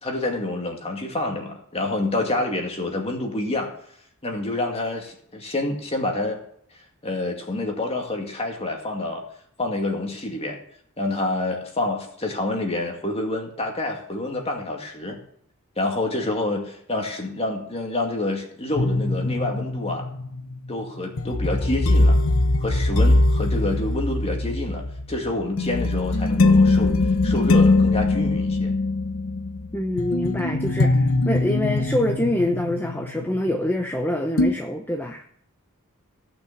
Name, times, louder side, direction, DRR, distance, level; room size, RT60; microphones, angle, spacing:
voice 1, 0.0-3.7 4.2-6.4 7.0-9.2 9.6-10.6 11.0-15.2 15.8-20.1 20.7-22.2 22.6-24.8 25.1-27.0 27.2-28.7, left 2 dB, 30° left, 2 dB, 2.2 m, -27 dB
sound 1, 18.8-34.0 34.4-34.5, left 2 dB, 65° left, 0.9 m, -21 dB
voice 2, 29.7-35.2, left 1 dB, 10° left, 3 dB, 0.7 m, -25 dB
15.5 x 6.1 x 7.2 m, 0.66 s
head